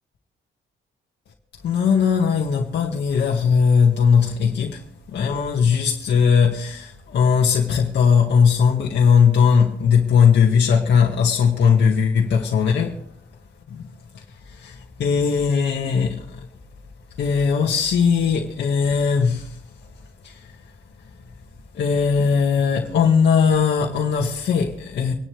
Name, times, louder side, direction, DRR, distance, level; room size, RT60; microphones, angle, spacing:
voice 1, 1.6-13.1 14.1-16.5 17.2-21.1 21.7-25.1, left 6 dB, 60° left, 2.0 m, -19 dB
26.5 x 11.0 x 3.5 m
cardioid pair, 175°, 20 cm